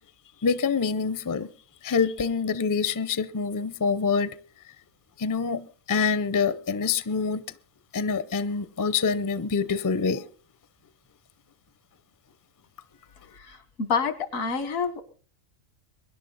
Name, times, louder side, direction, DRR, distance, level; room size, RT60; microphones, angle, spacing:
voice 1, 0.4-1.5 1.8-4.4 5.2-7.4 7.9-10.3, left 5 dB, 25° left, 0.4 m, -26 dB
voice 2, 13.4-15.0, left 5 dB, 85° left, 1.9 m, -28 dB
23.5 x 10.5 x 4.0 m
omnidirectional pair, 1.4 m